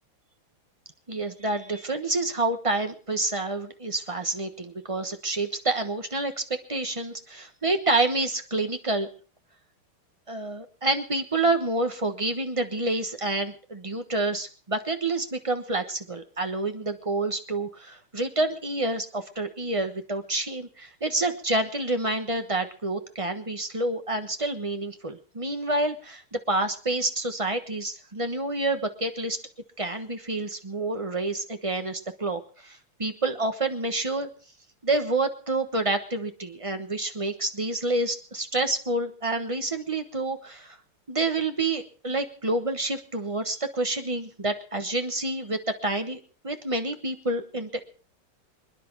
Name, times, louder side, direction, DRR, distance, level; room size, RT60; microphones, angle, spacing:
voice 1, 1.1-6.3 6.7-9.1 10.3-29.4 29.8-34.3 34.8-40.8 41.1-47.9, right 2 dB, 25° right, 7 dB, 0.7 m, -28 dB
26.0 x 10.5 x 4.6 m, 0.40 s
omnidirectional pair, 2.4 m